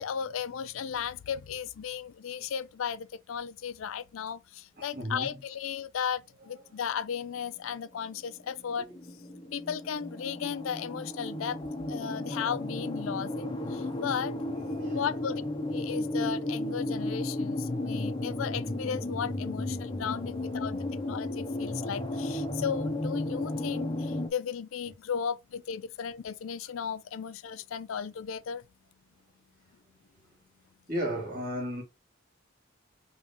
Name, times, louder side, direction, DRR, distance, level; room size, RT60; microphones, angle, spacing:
voice 1, 0.0-8.9 9.5-11.6 11.9-14.3 14.9-15.4 15.7-28.6, left 7 dB, 75° left, 0.4 m, -35 dB
voice 2, 4.8-5.4 14.8-15.1 17.8-17.9 30.9-31.8, equal, 45° right, 2.8 m, -34 dB
sound 1, 7.4-24.3, left 1 dB, 25° left, 0.6 m, -34 dB
4.9 x 3.1 x 2.9 m
head